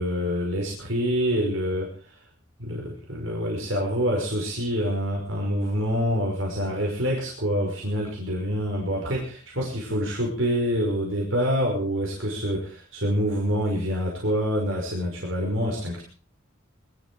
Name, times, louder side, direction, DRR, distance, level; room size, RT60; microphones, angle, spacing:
voice 1, 0.0-1.9 2.6-16.0, equal, 70° right, -1 dB, 5.6 m, -26 dB
21.5 x 13.5 x 4.7 m, 0.37 s
head